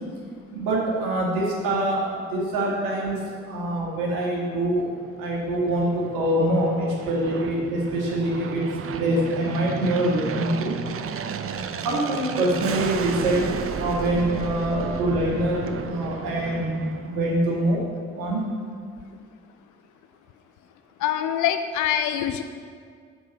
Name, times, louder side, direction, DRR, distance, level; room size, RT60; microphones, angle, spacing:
voice 1, 0.5-4.9 5.2-8.6 8.9-10.7 11.7-13.5 13.8-17.8 18.1-18.4, right 1 dB, 75° right, -3 dB, 1.8 m, -24 dB
Aircraft, 4.8-17.6, right 6 dB, 40° right, 0.6 m, -34 dB
voice 2, 21.0-22.4, left 10 dB, 65° left, 9 dB, 0.5 m, -24 dB
6.1 x 5.5 x 7.0 m, 2.1 s
hypercardioid pair, 40°, 33 cm